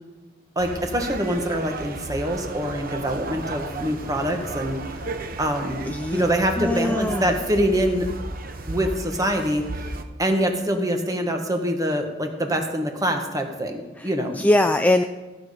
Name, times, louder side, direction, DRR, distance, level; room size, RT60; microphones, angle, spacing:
voice 1, 0.5-4.8 5.4-5.8 6.1-8.1 8.7-9.6 10.2-14.4, equal, 20° right, 4 dB, 1.4 m, -24 dB
sound 1, 0.6-10.0, right 2 dB, 55° right, 0.9 m, -34 dB
voice 2, 5.8-6.2 6.6-7.4 14.0-15.0, left 1 dB, 10° left, 6 dB, 0.4 m, -22 dB
15.0 x 8.5 x 5.0 m, 1.2 s
head